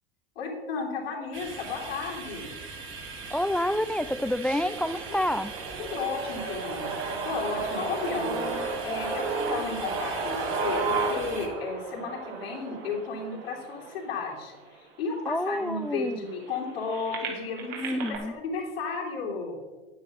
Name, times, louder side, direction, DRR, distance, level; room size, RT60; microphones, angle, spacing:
voice 1, 0.4-2.5 5.8-8.5 8.8-18.0 18.3-19.6, left 4 dB, 80° left, -2 dB, 2.7 m, -33 dB
sound 1, 1.3-11.5, right 4 dB, 45° right, 3.1 m, -41 dB
voice 2, 3.3-5.5 15.3-16.2 17.8-18.4, left 1 dB, 5° left, 15 dB, 0.3 m, -28 dB
sound 2, 4.7-14.7 15.3-15.4 15.7-18.2, right 3 dB, 65° right, 3.1 m, -33 dB
10.0 x 9.2 x 5.2 m, 1.3 s
hypercardioid pair, 80°, 29 cm